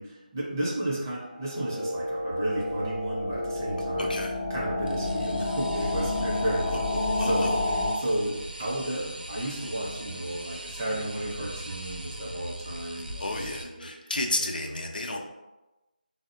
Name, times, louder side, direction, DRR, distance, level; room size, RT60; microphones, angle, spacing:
voice 1, 0.0-4.2 4.5-6.9 7.2-14.1 15.1-15.2, right 1 dB, 20° right, -5 dB, 0.5 m, -33 dB
sound 1, 1.3-7.9, left 2 dB, 25° left, 0.5 m, -30 dB
voice 2, 4.0-4.3 6.7-7.6 12.9-15.2, left 2 dB, 65° left, 2 dB, 0.5 m, -32 dB
sound 2, 4.8-13.6, right 1 dB, 80° right, 0.6 m, -40 dB
3.6 x 2.0 x 2.5 m, 1.0 s
figure-of-eight pair, 160°, 5 cm